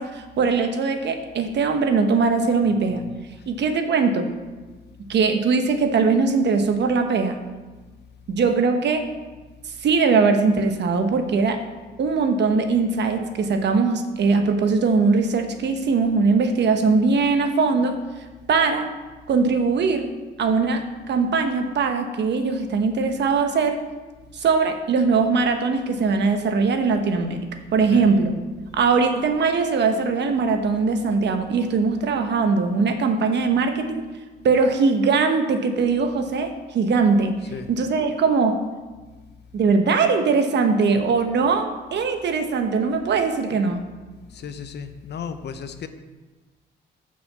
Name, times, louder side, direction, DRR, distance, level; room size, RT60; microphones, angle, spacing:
voice 1, 0.0-3.0 3.5-4.3 5.1-7.4 8.3-9.0 9.8-11.6 12.0-18.0 18.5-18.9 19.3-20.1 20.4-23.8 24.3-27.4 27.7-28.3 28.7-34.0 34.4-37.3 37.7-38.6 39.5-43.8, right 4 dB, 60° right, 6 dB, 1.1 m, -21 dB
voice 2, 44.3-45.9, left 7 dB, 60° left, 10 dB, 0.8 m, -34 dB
6.4 x 6.0 x 7.3 m, 1.3 s
cardioid pair, 90°, 20 cm